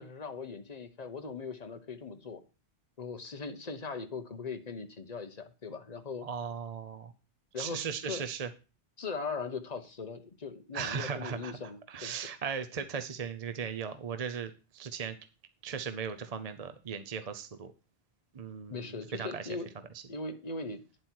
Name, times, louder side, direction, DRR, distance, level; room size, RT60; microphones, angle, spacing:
voice 1, 0.0-2.4 3.0-6.3 7.5-8.2 9.0-12.1 18.7-19.7 20.1-20.8, left 4 dB, 40° left, 8 dB, 1.1 m, -40 dB
voice 2, 6.2-7.1 7.6-8.5 10.7-11.5 11.9-15.2 15.6-17.7 18.3-19.5, right 7 dB, 40° right, 10 dB, 0.7 m, -37 dB
9.7 x 7.6 x 4.6 m, 0.33 s
omnidirectional pair, 1.1 m